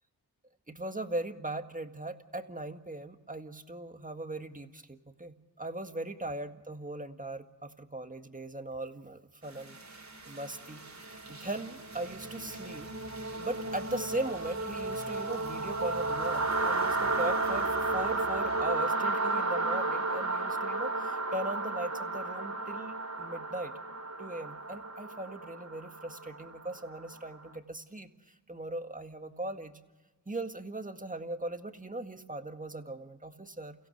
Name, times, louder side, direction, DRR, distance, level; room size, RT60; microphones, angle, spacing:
voice 1, 0.7-12.9 13.4-23.7 24.2-29.7 30.3-33.7, right 2 dB, 20° right, 7 dB, 1.8 m, -39 dB
sound 1, 9.6-27.4, right 2 dB, 40° right, 3.2 m, -33 dB
29.5 x 16.0 x 6.6 m, 1.2 s
cardioid pair, 50°, 42 cm